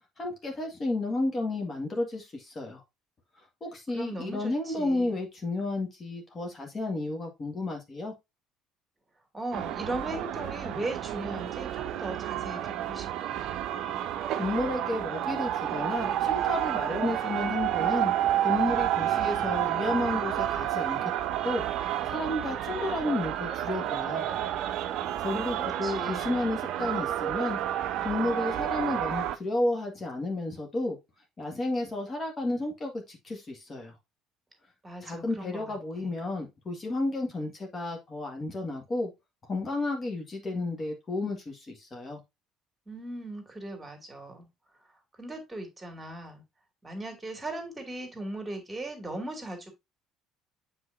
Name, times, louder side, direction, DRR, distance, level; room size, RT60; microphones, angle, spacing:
voice 1, 0.2-2.8 3.6-8.1 14.4-18.1 18.4-21.0 21.4-21.6 22.1-24.3 25.2-27.6 28.0-31.0 31.4-33.9 35.0-39.1 39.5-42.2, left 2 dB, 35° left, 2.0 m, -32 dB
voice 2, 3.9-5.2 9.3-13.4 25.2-26.3 34.8-36.1 42.9-44.5 45.2-46.4 46.8-49.7, right 1 dB, 15° right, 2.5 m, -38 dB
sound 1, 9.5-29.4, right 12 dB, 60° right, 0.5 m, -30 dB
8.0 x 4.4 x 2.7 m
figure-of-eight pair, 55°, 0 cm